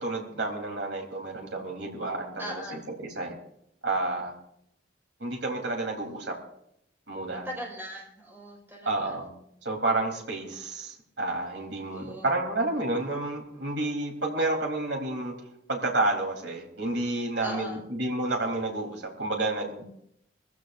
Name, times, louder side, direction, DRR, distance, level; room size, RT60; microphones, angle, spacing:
voice 1, 0.0-3.4 3.8-4.3 5.2-6.3 7.1-7.5 8.9-9.3 9.6-15.3 15.7-19.8, right 2 dB, 80° right, 1 dB, 3.6 m, -30 dB
voice 2, 2.4-2.8 7.4-9.2 11.9-12.3 17.4-17.8, equal, 10° right, -1 dB, 4.7 m, -39 dB
22.5 x 15.5 x 2.6 m, 0.74 s
head